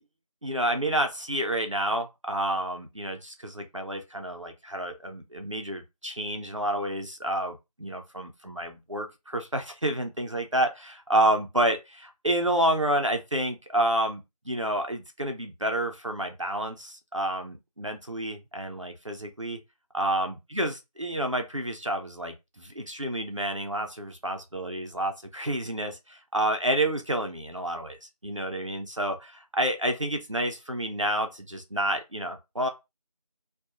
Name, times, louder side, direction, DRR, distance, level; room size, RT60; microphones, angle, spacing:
voice 1, 0.4-14.2 14.5-19.6 19.9-28.0 28.2-32.7, right 1 dB, 55° right, 0.5 m, -29 dB
2.7 x 2.2 x 2.4 m
figure-of-eight pair, 180°, 20 cm